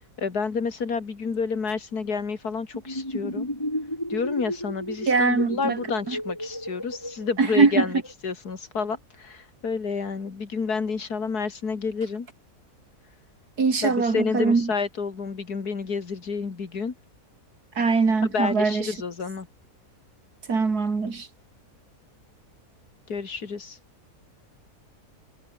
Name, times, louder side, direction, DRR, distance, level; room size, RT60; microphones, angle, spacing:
voice 1, 0.2-3.5 4.1-12.3 13.8-16.9 18.3-19.5 23.1-23.8, left 5 dB, 90° left, 3.0 m, -29 dB
sound 1, 2.7-8.1, left 1 dB, 15° left, 6.6 m, -33 dB
voice 2, 5.1-5.8 6.1-6.2 7.4-7.8 13.6-14.7 17.8-18.9 20.5-21.3, right 4 dB, 90° right, 3.4 m, -22 dB
omnidirectional pair, 1.6 m